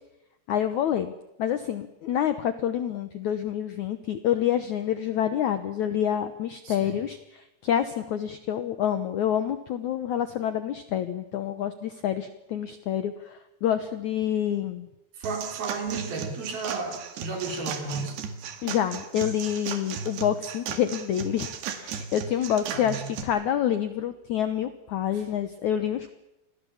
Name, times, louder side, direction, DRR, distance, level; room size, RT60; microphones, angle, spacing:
voice 1, 0.5-1.1 1.4-14.9 18.6-26.1, left 10 dB, 70° left, 10 dB, 1.8 m, -27 dB
voice 2, 6.6-7.0 15.2-18.2 22.7-23.1 25.1-25.3, right 4 dB, 60° right, 3 dB, 5.8 m, -33 dB
sound 1, 15.2-23.2, right 7 dB, 80° right, 4.0 m, -36 dB
28.0 x 21.5 x 7.3 m, 0.90 s
omnidirectional pair, 4.8 m